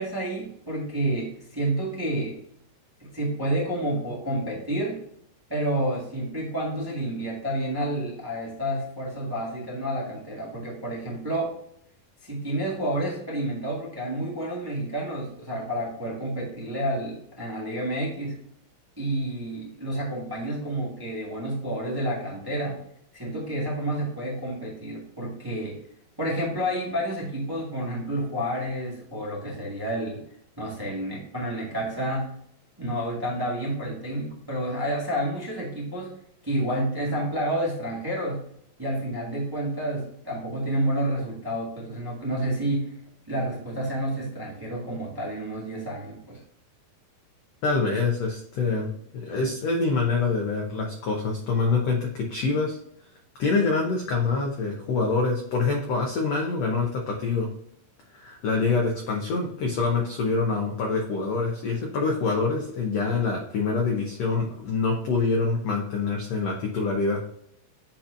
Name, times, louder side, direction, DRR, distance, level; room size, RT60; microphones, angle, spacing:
voice 1, 0.0-2.4 3.0-5.0 5.5-11.5 12.2-18.4 19.0-22.8 23.1-25.8 26.2-30.2 30.6-32.3 32.8-36.1 36.4-38.5 38.8-43.0 43.3-46.4, right 1 dB, 25° right, -5 dB, 0.5 m, -29 dB
voice 2, 47.6-52.8 53.4-57.5 58.1-67.2, left 4 dB, 75° left, 0 dB, 1.5 m, -25 dB
10.0 x 4.4 x 2.6 m, 0.70 s
omnidirectional pair, 4.3 m